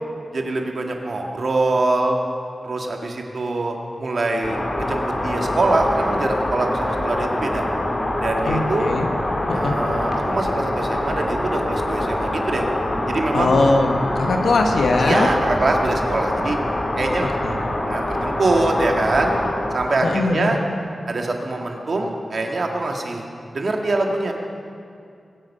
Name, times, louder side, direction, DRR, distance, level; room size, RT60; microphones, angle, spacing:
voice 1, 0.3-2.2 2.6-7.7 8.2-8.9 9.5-12.7 13.1-13.6 15.0-16.6 17.0-17.3 17.8-19.3 19.7-20.6 21.1-23.3 23.5-24.3, right 2 dB, 70° right, 2 dB, 1.8 m, -23 dB
sound 1, 4.4-20.5, left 1 dB, 50° left, 2.3 m, -25 dB
voice 2, 8.4-9.1 9.5-9.8 13.3-15.3 17.4-17.6 20.0-20.6, left 3 dB, 85° left, 4 dB, 1.2 m, -20 dB
22.0 x 7.9 x 5.6 m, 2.4 s
cardioid pair, 40°, 0 cm